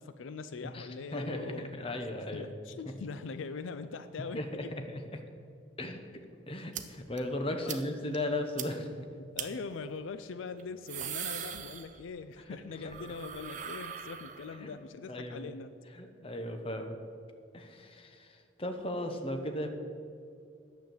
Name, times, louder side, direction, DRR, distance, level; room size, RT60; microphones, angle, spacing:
voice 1, 0.0-1.7 2.3-4.8 7.7-7.8 9.3-15.7, left 4 dB, 75° left, 11 dB, 0.4 m, -42 dB
voice 2, 0.6-2.5 4.3-5.2 5.8-9.1 12.5-12.6 12.8-13.1 14.6-14.7 15.1-15.5 15.9-17.0 17.5-19.7, left 1 dB, 30° left, 5 dB, 0.9 m, -37 dB
sound 1, 6.7-6.8 7.2-7.3 7.7-7.8 8.1-8.2 8.6-8.7 9.4-9.5 10.6-12.3 12.6-14.7, right 9 dB, 40° right, 0.6 m, -40 dB
9.6 x 7.1 x 7.7 m, 2.5 s
head